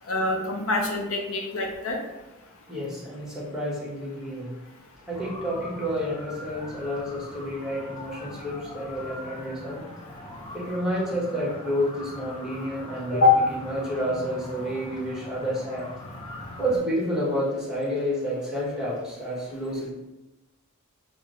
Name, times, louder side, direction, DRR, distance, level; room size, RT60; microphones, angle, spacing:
voice 1, 0.1-2.0 13.2-13.3, left 4 dB, 65° left, 1 dB, 0.7 m, -23 dB
voice 2, 2.7-4.5 5.1-9.8 10.5-13.2 13.6-15.9 16.6-19.9, equal, 5° right, -6 dB, 1.3 m, -29 dB
sound 1, 5.1-16.8, left 1 dB, 25° left, 0.7 m, -41 dB
5.8 x 2.7 x 3.1 m, 0.99 s
head